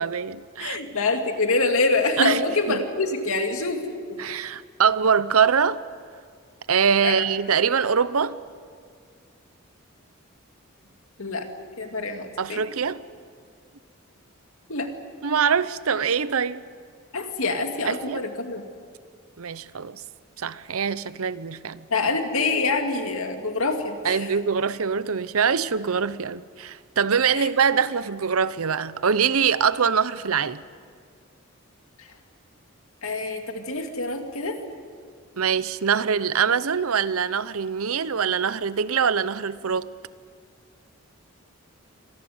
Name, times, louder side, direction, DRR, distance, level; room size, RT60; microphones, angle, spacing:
voice 1, 0.0-0.8 2.2-2.4 4.2-5.8 6.7-8.4 12.4-13.0 15.2-16.6 17.9-18.3 19.4-20.0 20.4-21.8 24.0-30.6 35.4-39.9, right 6 dB, 85° right, 0.7 m, -23 dB
voice 2, 0.6-3.8 4.1-4.2 7.0-7.3 11.2-11.5 11.8-12.6 14.7-14.9 17.1-18.6 21.9-24.3 27.3-27.5 32.0-32.1 33.0-34.6, left 3 dB, 80° left, 2.3 m, -26 dB
25.5 x 19.0 x 7.9 m
head